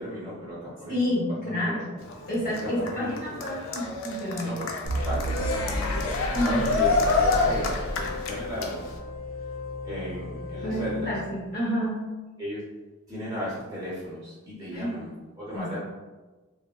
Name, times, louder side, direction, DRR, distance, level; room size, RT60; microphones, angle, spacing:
voice 1, 0.0-1.1 1.4-1.7 2.6-3.4 4.4-6.0 6.4-8.9 9.8-11.1 12.4-12.6 13.1-15.8, equal, 15° right, -8 dB, 0.7 m, -35 dB
voice 2, 0.9-1.9 2.3-4.6 6.3-6.6 10.6-12.0 14.7-15.0 15.5-15.7, equal, 40° left, -7 dB, 0.8 m, -29 dB
Cheering, 2.0-9.0, left 3 dB, 70° left, 0.4 m, -28 dB
sound 1, 4.9-9.0, right 1 dB, 70° right, 0.4 m, -32 dB
sound 2, 5.6-11.7, left 3 dB, 90° left, 1.1 m, -39 dB
3.3 x 2.1 x 2.2 m, 1.2 s
head